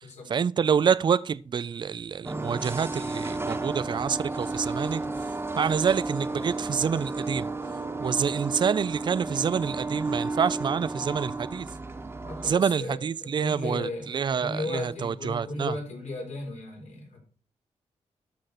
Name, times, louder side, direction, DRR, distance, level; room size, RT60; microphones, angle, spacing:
voice 1, 0.3-5.0 5.6-7.5 8.0-11.7 12.4-15.7, right 7 dB, 40° right, 0.4 m, -27 dB
sound 1, 2.2-12.5, right 3 dB, 20° right, 1.1 m, -33 dB
voice 2, 12.2-17.2, left 2 dB, 70° left, 4.1 m, -36 dB
13.0 x 6.3 x 4.3 m
cardioid pair, 95°, 12 cm